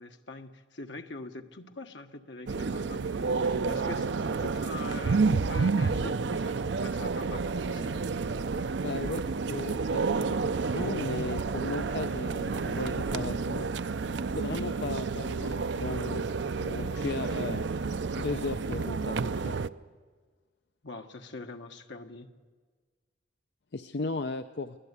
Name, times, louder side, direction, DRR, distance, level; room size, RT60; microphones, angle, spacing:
voice 1, 0.0-8.0 14.3-14.6 20.8-22.3, left 2 dB, 85° left, 5 dB, 1.4 m, -43 dB
sound 1, 2.5-19.7, right 4 dB, 80° right, 0.6 m, -30 dB
voice 2, 8.8-13.7 14.4-16.3 16.6-17.7 18.2-19.5 23.7-24.8, left 3 dB, 65° left, 9 dB, 0.6 m, -36 dB
24.5 x 17.5 x 8.4 m, 1.5 s
head